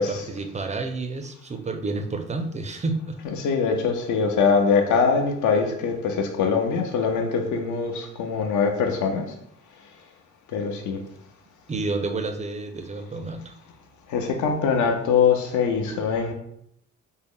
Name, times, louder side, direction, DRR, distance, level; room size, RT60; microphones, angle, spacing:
voice 1, 0.0-3.2 11.7-13.6, right 3 dB, 25° right, 7 dB, 0.4 m, -30 dB
voice 2, 3.2-9.2 10.5-11.0 14.1-16.3, left 5 dB, 75° left, 4 dB, 0.7 m, -23 dB
3.7 x 2.1 x 3.7 m, 0.73 s
cardioid pair, 90°, 30 cm